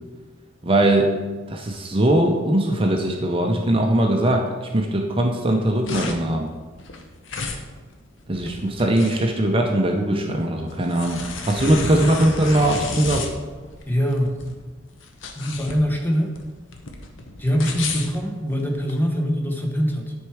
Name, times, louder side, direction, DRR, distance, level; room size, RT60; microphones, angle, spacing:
voice 1, 0.6-1.2 1.5-6.5 8.3-13.3, right 1 dB, 30° right, 2 dB, 0.7 m, -20 dB
sound 1, 5.5-19.0, left 3 dB, 70° left, 0.9 m, -33 dB
voice 2, 13.9-14.5 15.4-16.4 17.4-20.1, equal, 10° left, 1 dB, 1.0 m, -23 dB
10.0 x 4.5 x 4.8 m, 1.3 s
head